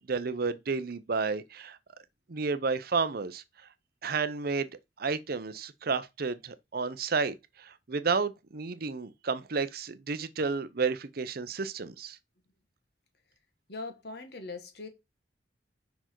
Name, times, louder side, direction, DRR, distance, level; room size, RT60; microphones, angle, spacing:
voice 1, 0.1-1.8 2.3-3.4 4.0-4.7 5.0-12.2, right 4 dB, 55° right, 0.6 m, -31 dB
voice 2, 13.7-14.9, left 3 dB, 60° left, 1.5 m, -41 dB
5.6 x 4.5 x 4.5 m
head